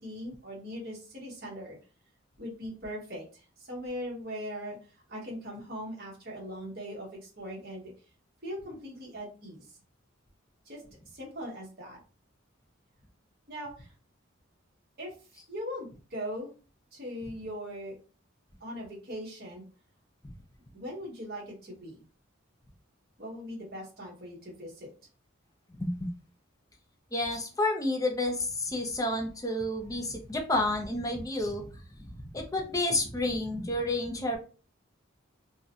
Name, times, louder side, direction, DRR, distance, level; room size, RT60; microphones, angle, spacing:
voice 1, 0.0-1.8 2.4-4.8 5.1-7.9 8.4-9.7 10.6-12.0 13.5-13.9 15.0-16.5 16.9-18.0 18.6-19.6 20.7-22.0 23.2-24.9, equal, 50° right, -3 dB, 1.4 m, -40 dB
voice 2, 27.1-31.6 32.2-34.4, left 1 dB, 15° left, 3 dB, 0.5 m, -30 dB
3.6 x 2.2 x 2.7 m, 0.35 s
head